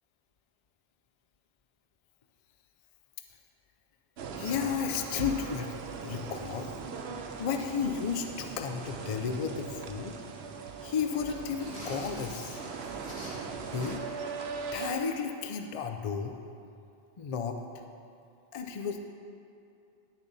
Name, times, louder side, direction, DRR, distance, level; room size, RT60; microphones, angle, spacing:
sound 1, 4.2-15.0, right 5 dB, 90° right, 0.9 m, -40 dB
voice 1, 4.4-6.7 7.4-10.2 10.8-12.6 13.7-14.0 14.7-16.4 17.2-17.6 18.5-19.0, left 6 dB, 45° left, 5 dB, 0.5 m, -33 dB
sound 2, 11.4-14.2, equal, 85° left, 2.8 m, -47 dB
10.0 x 6.8 x 4.1 m, 2.5 s
omnidirectional pair, 1.0 m